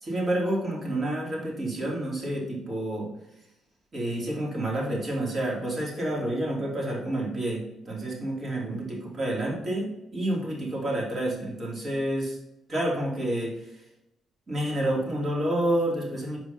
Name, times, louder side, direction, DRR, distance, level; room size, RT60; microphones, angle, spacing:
voice 1, 0.0-3.1 3.9-12.3 12.7-13.5 14.5-16.4, right 1 dB, 35° right, -3 dB, 2.9 m, -29 dB
5.6 x 4.7 x 5.3 m, 0.84 s
cardioid pair, 90°, 0 cm